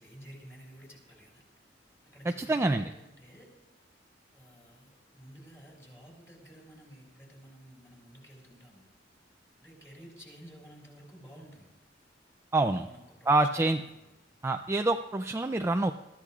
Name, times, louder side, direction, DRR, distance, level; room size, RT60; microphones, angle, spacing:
voice 1, 0.0-1.4 2.0-3.5 4.3-8.8 9.6-11.7 12.8-14.1, equal, 15° left, -1 dB, 4.5 m, -52 dB
voice 2, 2.4-2.8 12.5-12.9 13.3-13.8 14.4-15.9, right 2 dB, 15° right, 6 dB, 0.4 m, -26 dB
22.0 x 13.5 x 2.4 m, 1.0 s
head